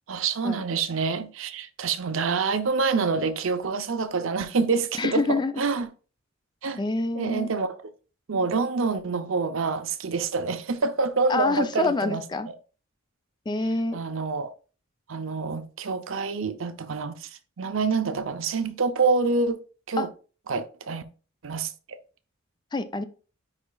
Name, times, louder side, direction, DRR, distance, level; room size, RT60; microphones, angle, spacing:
voice 1, 0.1-5.9 6.6-6.8 7.2-7.8 8.3-12.2 13.9-14.5 15.1-20.1 20.5-21.0 21.4-21.7, right 4 dB, 70° right, 0.6 m, -27 dB
voice 2, 5.0-5.6 6.8-7.5 11.3-12.5 13.5-14.0 20.0-20.1 22.7-23.0, left 3 dB, 20° left, 0.4 m, -26 dB
9.8 x 4.1 x 2.3 m
head